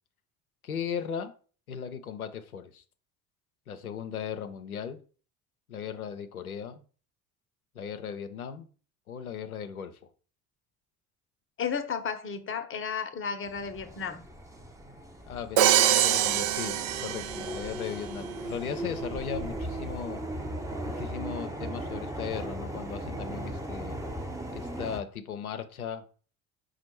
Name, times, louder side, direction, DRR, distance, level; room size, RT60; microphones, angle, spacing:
voice 1, 0.6-1.3 1.7-2.8 3.7-5.0 5.7-6.8 7.7-8.7 9.1-10.0 15.3-20.2 20.9-24.0 24.5-26.1, left 8 dB, 85° left, 0.6 m, -37 dB
voice 2, 11.6-14.2, left 6 dB, 30° left, 0.8 m, -33 dB
sound 1, 13.4-25.0, right 1 dB, 10° right, 0.7 m, -38 dB
Crash cymbal, 15.6-17.8, right 11 dB, 45° right, 0.5 m, -24 dB
5.1 x 2.4 x 4.4 m
figure-of-eight pair, 60°, 42 cm